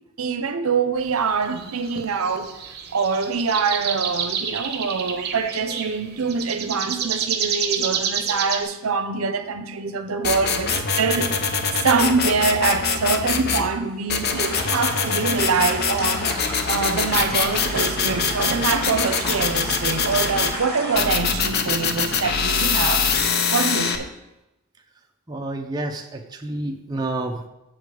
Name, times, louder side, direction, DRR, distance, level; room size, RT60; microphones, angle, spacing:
voice 1, 0.2-11.3 11.7-16.3 16.7-23.1 23.5-24.1, right 5 dB, 80° right, 0.6 m, -24 dB
sound 1, 1.3-8.6, right 7 dB, 50° right, 0.9 m, -29 dB
sound 2, 10.2-13.7 14.1-20.5 21.0-24.0, left 5 dB, 50° left, 0.6 m, -23 dB
sound 3, 14.3-21.1, equal, 30° left, 2.3 m, -34 dB
voice 2, 25.3-27.5, right 2 dB, 20° right, 0.6 m, -29 dB
7.2 x 5.0 x 6.3 m
head